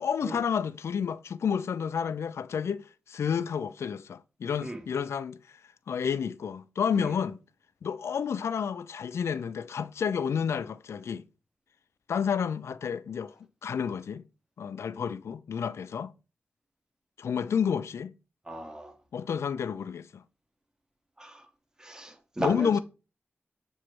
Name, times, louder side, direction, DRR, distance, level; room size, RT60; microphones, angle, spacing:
voice 1, 0.0-5.6 5.9-7.4 7.8-11.2 12.1-13.3 13.6-14.2 14.6-16.1 17.2-18.1 19.1-20.2 22.4-22.8, left 7 dB, 85° left, 0.3 m, -30 dB
voice 2, 18.4-18.9 21.2-21.5 21.8-22.8, right 1 dB, 15° right, 1.0 m, -36 dB
7.3 x 3.0 x 4.6 m
wide cardioid pair, 165°, 5 cm